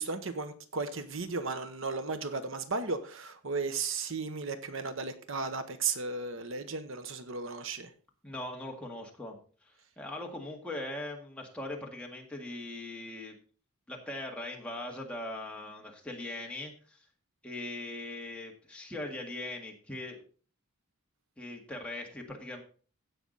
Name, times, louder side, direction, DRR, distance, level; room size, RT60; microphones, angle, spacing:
voice 1, 0.0-7.9, right 4 dB, 65° right, 9 dB, 1.0 m, -35 dB
voice 2, 8.2-13.4 13.9-17.1 17.4-20.2 21.4-22.6, left 1 dB, 5° left, 0 dB, 1.8 m, -40 dB
16.0 x 5.9 x 4.0 m, 0.39 s
head